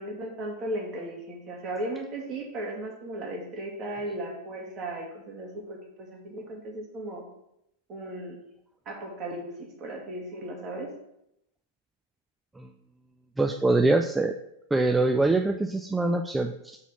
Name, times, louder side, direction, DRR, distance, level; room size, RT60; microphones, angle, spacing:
voice 1, 0.0-7.2 7.9-8.4 8.9-10.9, right 1 dB, 30° right, 0 dB, 1.8 m, -36 dB
voice 2, 13.4-14.3 14.7-16.8, right 2 dB, 10° right, 6 dB, 0.3 m, -24 dB
5.6 x 4.1 x 5.8 m, 0.80 s
figure-of-eight pair, 90°, 0 cm